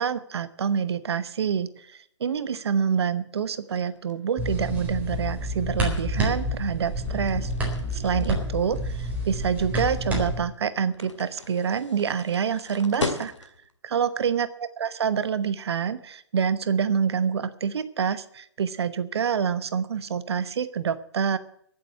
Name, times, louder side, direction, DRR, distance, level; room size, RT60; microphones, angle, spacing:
voice 1, 0.0-7.5 7.9-13.5 13.8-21.4, right 7 dB, 60° right, 14 dB, 1.1 m, -27 dB
sound 1, 3.3-13.8, left 3 dB, 85° left, 2.0 m, -39 dB
sound 2, 4.4-10.4, equal, 10° right, 4.1 m, -29 dB
14.5 x 7.7 x 8.9 m, 0.70 s
figure-of-eight pair, 135°, 15 cm